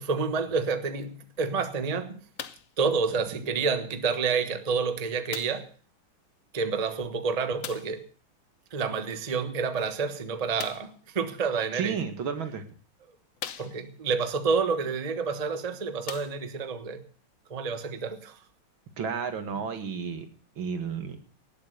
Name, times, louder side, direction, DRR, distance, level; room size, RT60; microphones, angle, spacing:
voice 1, 0.0-2.2 2.8-5.7 6.5-8.0 8.7-12.0 13.6-17.0 17.5-18.4, right 5 dB, 25° right, 1.1 m, -29 dB
sound 1, 2.4-2.8 3.7-3.8 5.3-5.7 7.6-8.0 10.5-11.0 12.0-12.1 12.7-12.8 13.4-14.1 15.3-15.4 16.0-16.7 17.5-17.6, left 9 dB, 55° left, 0.9 m, -40 dB
voice 2, 11.8-12.6 19.0-20.3 20.6-21.2, right 6 dB, 75° right, 2.6 m, -32 dB
18.5 x 8.6 x 6.6 m
omnidirectional pair, 2.2 m